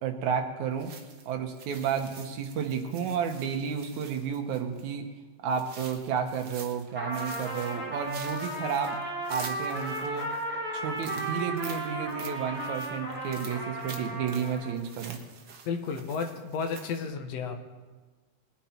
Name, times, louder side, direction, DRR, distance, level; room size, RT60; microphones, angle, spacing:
voice 1, 0.0-0.9 1.3-5.1 5.4-9.0 9.3-10.3 10.7-15.2, right 7 dB, 75° right, 5 dB, 2.5 m, -31 dB
sound 1, 0.8-4.9 5.5-6.9 7.1-10.4 10.9-17.1, right 6 dB, 60° right, 1.2 m, -47 dB
Trumpet, 6.9-14.8, right 1 dB, 5° right, 3.4 m, -35 dB
voice 2, 15.7-17.6, left 5 dB, 65° left, 4 dB, 2.2 m, -32 dB
20.5 x 9.6 x 4.4 m, 1.3 s
omnidirectional pair, 3.4 m